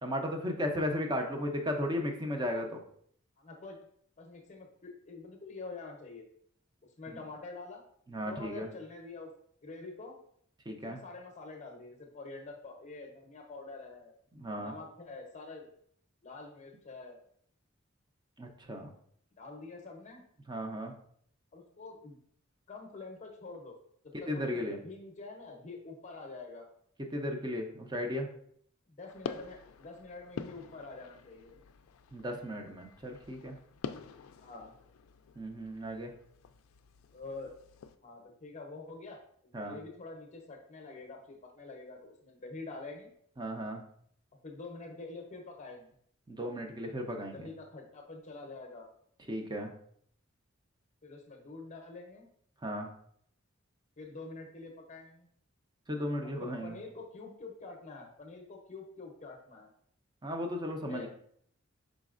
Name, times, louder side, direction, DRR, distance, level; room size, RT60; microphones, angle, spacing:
voice 1, 0.0-2.8 7.1-7.2 8.1-8.7 10.7-11.0 14.3-14.7 18.4-18.9 20.5-20.9 24.3-24.8 27.1-28.3 32.1-33.6 35.4-36.1 39.5-39.8 43.4-43.8 46.3-47.5 49.3-49.7 52.6-52.9 55.9-56.8 60.2-61.1, equal, 20° right, 3 dB, 0.5 m, -35 dB
voice 2, 3.4-3.8 4.2-6.2 7.0-7.8 8.2-9.3 9.6-10.2 10.9-14.1 14.5-15.7 16.2-17.2 19.4-20.2 21.5-22.2 22.7-23.8 24.2-26.7 28.9-31.6 34.4-34.7 37.1-37.5 38.0-39.2 39.4-43.1 44.4-45.9 47.1-48.9 51.0-52.3 54.0-55.3 56.4-59.7 60.8-61.1, left 3 dB, 35° left, 2 dB, 0.7 m, -46 dB
sound 1, 29.1-38.0, left 6 dB, 80° left, 0.3 m, -47 dB
5.1 x 4.0 x 2.4 m, 0.65 s
head